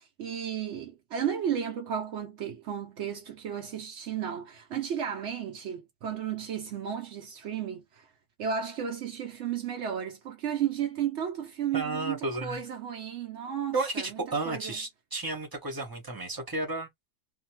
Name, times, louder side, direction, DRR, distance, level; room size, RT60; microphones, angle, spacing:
voice 1, 0.0-8.1 8.4-14.2 14.4-14.8, right 8 dB, 70° right, 0.6 m, -33 dB
voice 2, 11.7-12.6 13.7-16.9, right 2 dB, 20° right, 0.7 m, -32 dB
2.6 x 2.2 x 2.9 m
omnidirectional pair, 1.8 m